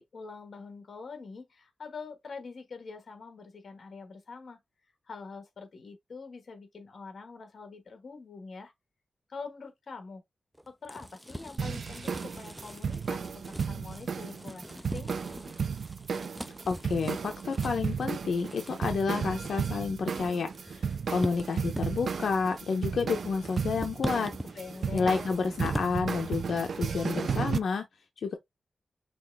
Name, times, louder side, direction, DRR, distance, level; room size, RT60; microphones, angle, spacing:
voice 1, 0.0-4.6 5.1-8.7 9.3-10.2 10.7-15.1 24.4-25.3, left 4 dB, 50° left, 1.5 m, -45 dB
sound 1, 10.5-26.0, equal, ahead, 0.4 m, -43 dB
sound 2, 11.6-27.6, right 6 dB, 60° right, 0.4 m, -34 dB
voice 2, 16.7-24.3 24.9-27.8 28.2-28.3, left 5 dB, 70° left, 0.7 m, -30 dB
6.1 x 2.5 x 3.4 m
wide cardioid pair, 145°, 0 cm